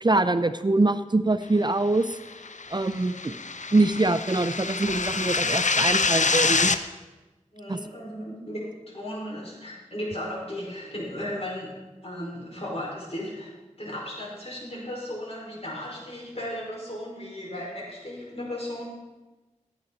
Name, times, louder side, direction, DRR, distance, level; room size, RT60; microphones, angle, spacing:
voice 1, 0.0-2.2 2.7-3.3 3.7-6.7 7.7-7.8, right 2 dB, 35° right, 11 dB, 0.5 m, -24 dB
sound 1, 2.3-6.8, left 4 dB, 70° left, 0.6 m, -26 dB
voice 2, 7.5-11.7 12.0-13.5 13.8-18.9, left 1 dB, 50° left, -4 dB, 4.9 m, -35 dB
16.0 x 9.0 x 4.1 m, 1.1 s
wide cardioid pair, 40°, 13 cm